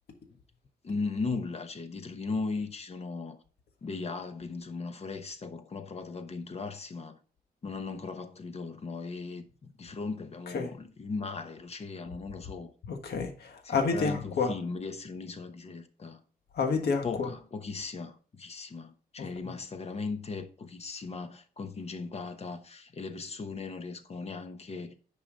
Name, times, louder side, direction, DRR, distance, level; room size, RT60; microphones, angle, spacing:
voice 1, 0.8-3.4 3.8-7.2 7.6-12.7 13.6-16.2 17.0-25.0, left 4 dB, 40° left, 1.0 m, -37 dB
voice 2, 12.9-14.5 16.5-17.3 19.2-19.6, left 4 dB, 90° left, 1.5 m, -30 dB
9.6 x 5.7 x 3.9 m
wide cardioid pair, 155°, 16 cm